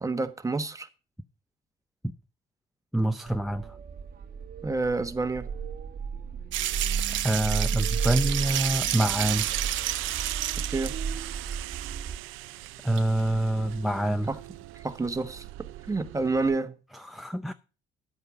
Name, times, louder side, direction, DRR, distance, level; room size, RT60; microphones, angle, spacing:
voice 1, 0.0-0.9 4.6-5.5 10.7-10.9 14.3-14.4 14.8-15.4 15.9-16.7, right 3 dB, 15° right, 1.3 m, -28 dB
voice 2, 2.9-3.8 7.2-9.5 12.8-14.3 16.9-17.5, right 1 dB, ahead, 0.5 m, -26 dB
sound 1, 3.3-12.2, right 6 dB, 50° right, 1.1 m, -34 dB
sound 2, 6.5-11.0 11.5-11.6 12.7-12.8 13.0-13.1, right 13 dB, 70° right, 1.0 m, -30 dB
sound 3, 9.2-16.6, right 17 dB, 90° right, 0.6 m, -39 dB
11.0 x 8.0 x 5.0 m
cardioid pair, 110°, 20 cm